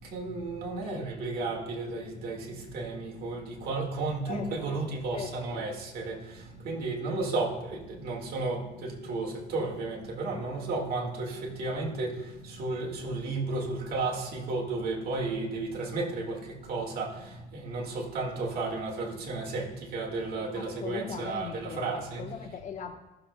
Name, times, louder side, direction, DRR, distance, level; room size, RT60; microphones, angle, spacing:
voice 1, 0.0-22.4, right 3 dB, 65° right, 1.8 m, -33 dB
voice 2, 4.3-5.7 20.5-22.9, left 6 dB, 45° left, 1.1 m, -40 dB
15.0 x 6.6 x 2.2 m
cardioid pair, 110°, 17 cm